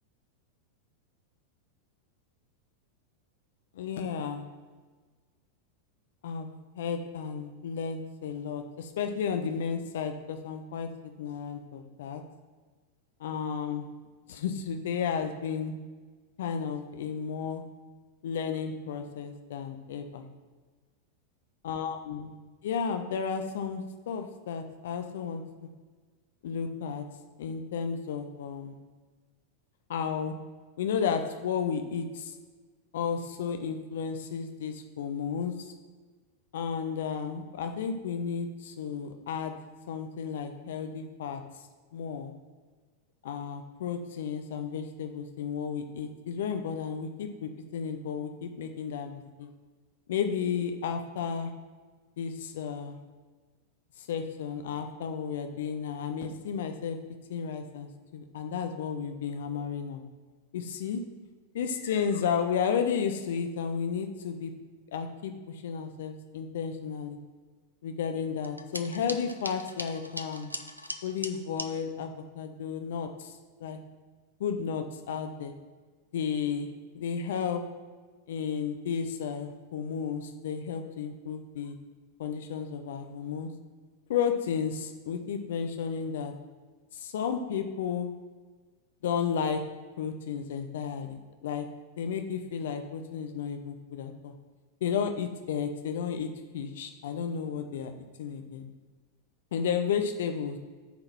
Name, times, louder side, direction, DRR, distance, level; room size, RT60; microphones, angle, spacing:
voice 1, 3.8-4.5 6.2-12.2 13.2-13.9 14.3-15.7 16.4-17.6 18.2-20.3 21.6-22.3 22.6-25.7 26.4-27.0 27.4-28.8 29.9-30.3 30.8-32.3 32.9-35.7 36.5-39.5 39.9-41.4 41.9-42.3 43.2-49.5 50.1-51.5 52.2-53.0 54.0-57.0 57.3-60.0 60.5-61.0 61.5-64.5 64.9-67.2 67.8-70.5 71.0-73.8 74.4-75.5 76.1-76.7 76.9-77.6 78.3-81.8 82.2-83.5 84.1-86.3 86.9-88.1 89.0-89.6 90.0-91.7 92.0-94.3 94.8-96.3 96.5-97.9 98.2-98.7 99.5-100.6, left 7 dB, 60° left, 6 dB, 0.6 m, -33 dB
sound 1, 68.4-71.7, equal, 90° right, 0.5 m, -39 dB
9.5 x 3.9 x 6.0 m, 1.4 s
figure-of-eight pair, 90°, 0 cm